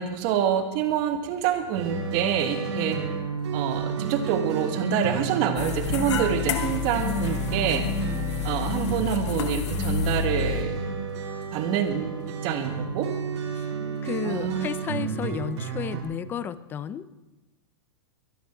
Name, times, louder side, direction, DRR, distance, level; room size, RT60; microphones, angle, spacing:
voice 1, 0.0-3.0 3.5-7.8 8.4-10.8 11.5-13.1 14.2-14.7, right 8 dB, 35° right, 7 dB, 1.8 m, -26 dB
sound 1, 1.7-16.0, right 3 dB, 80° right, 5.7 m, -31 dB
sound 2, 5.6-10.6, left 11 dB, 75° left, 2.2 m, -30 dB
voice 2, 14.0-17.1, left 8 dB, 15° left, 16 dB, 0.4 m, -32 dB
23.0 x 12.0 x 4.5 m, 1.1 s
supercardioid pair, 160°, 15 cm